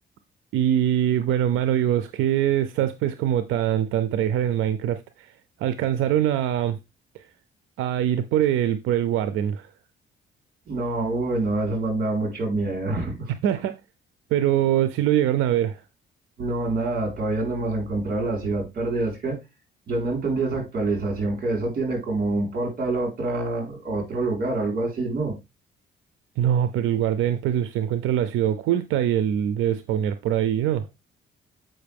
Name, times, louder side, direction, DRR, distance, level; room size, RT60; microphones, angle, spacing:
voice 1, 0.5-5.3 5.6-6.8 7.1-7.2 7.8-9.7 13.4-13.8 14.3-15.8 26.4-30.9, right 11 dB, 90° right, 0.6 m, -23 dB
voice 2, 10.7-13.3 16.4-19.4 19.9-25.3, right 2 dB, 50° right, 4.0 m, -26 dB
7.8 x 5.4 x 3.4 m
cardioid pair, 90°, 20 cm